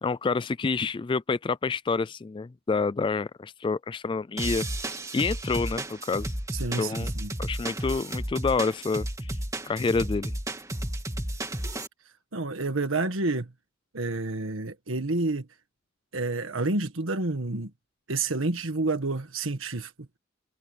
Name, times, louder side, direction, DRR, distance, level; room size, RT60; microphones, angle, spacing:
voice 1, 0.0-6.3 6.8-7.1 7.4-9.3 9.7-10.3, left 4 dB, 25° left, 0.3 m, -28 dB
sound 1, 4.4-11.9, right 1 dB, 15° right, 3.0 m, -33 dB
voice 2, 6.5-7.3 12.3-13.5 13.9-15.5 16.1-17.7 18.1-19.9, right 3 dB, 80° right, 1.6 m, -29 dB
head